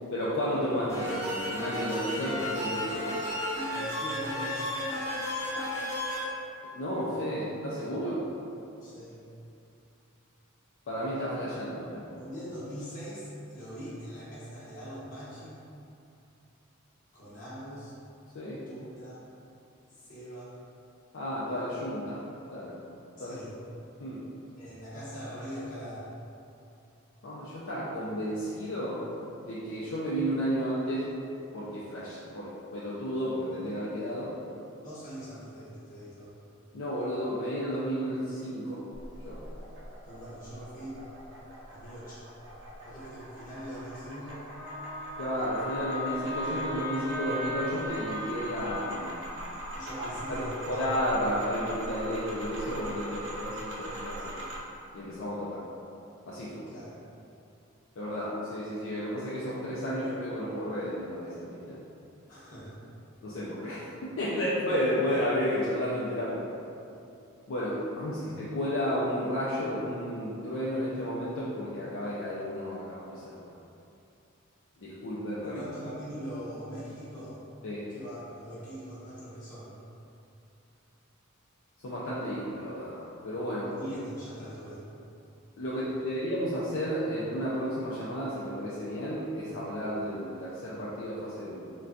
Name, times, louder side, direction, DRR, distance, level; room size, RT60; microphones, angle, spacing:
voice 1, 0.1-3.1 6.7-8.2 10.9-12.0 18.3-18.6 21.1-22.2 22.5-22.8 23.2-23.4 24.0-24.2 27.2-29.0 29.4-31.1 31.5-34.3 36.7-38.8 39.3-39.4 45.2-49.2 50.0-50.4 50.7-54.4 54.9-55.6 56.3-56.6 58.0-61.8 63.2-66.4 67.5-73.4 74.8-75.6 77.6-77.9 81.8-83.7 85.6-91.7, equal, 65° left, -8 dB, 0.4 m, -32 dB
sound 1, 0.9-6.2, left 1 dB, 15° left, 0.7 m, -33 dB
voice 2, 3.7-4.6 8.8-9.2 12.1-15.6 17.1-17.9 18.7-19.2 19.9-20.5 23.2-23.5 24.6-26.1 34.8-36.3 40.0-41.0 41.7-42.2 42.8-44.4 49.7-50.8 56.7-57.0 62.3-62.8 75.4-77.4 77.9-79.7 83.7-84.8, equal, 40° left, -11 dB, 1.1 m, -42 dB
sound 2, 38.9-54.6, right 1 dB, 60° right, 0.5 m, -42 dB
Wind instrument woodwind instrument, 44.6-49.0, left 1 dB, 20° right, 0.8 m, -37 dB
3.9 x 2.2 x 2.4 m, 2.7 s
head